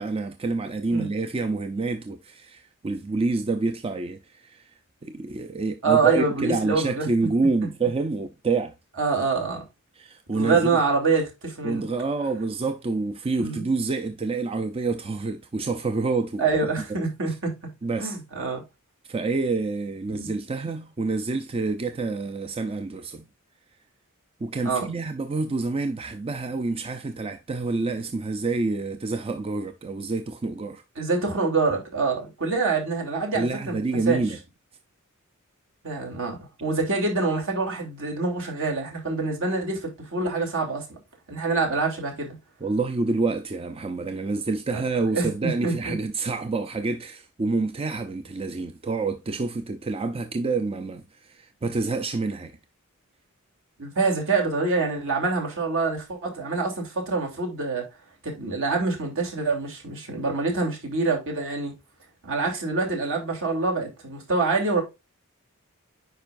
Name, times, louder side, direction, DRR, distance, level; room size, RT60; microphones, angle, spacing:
voice 1, 0.0-4.7 5.0-8.7 10.0-10.8 11.6-16.4 17.8-18.2 19.1-23.3 24.4-30.8 33.3-34.4 42.6-52.6, right 3 dB, 25° right, 0.5 m, -27 dB
voice 2, 5.8-7.1 9.0-9.6 10.3-11.8 13.4-13.6 16.4-17.6 18.0-18.6 20.1-20.3 24.6-24.9 31.0-33.8 34.0-34.2 35.8-40.8 41.3-42.4 44.7-44.8 45.1-45.9 53.8-57.9 58.2-61.7 62.2-64.8, right 4 dB, 65° right, 2.9 m, -25 dB
9.1 x 5.2 x 2.5 m
head